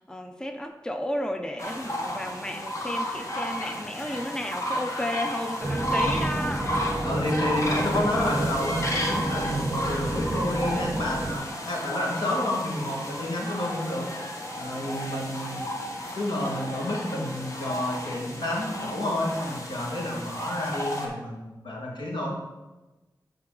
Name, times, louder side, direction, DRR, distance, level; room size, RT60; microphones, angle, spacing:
voice 1, 0.0-6.7, left 1 dB, 10° left, 5 dB, 0.5 m, -33 dB
sound 1, 1.6-21.1, equal, 40° left, 1.2 m, -33 dB
sound 2, 5.6-11.4, right 1 dB, 20° right, 0.8 m, -30 dB
voice 2, 7.0-14.1 14.6-15.6 16.1-22.4, left 1 dB, 85° left, -2 dB, 1.7 m, -30 dB
11.5 x 3.9 x 3.8 m, 1.1 s
wide cardioid pair, 90°, 8 cm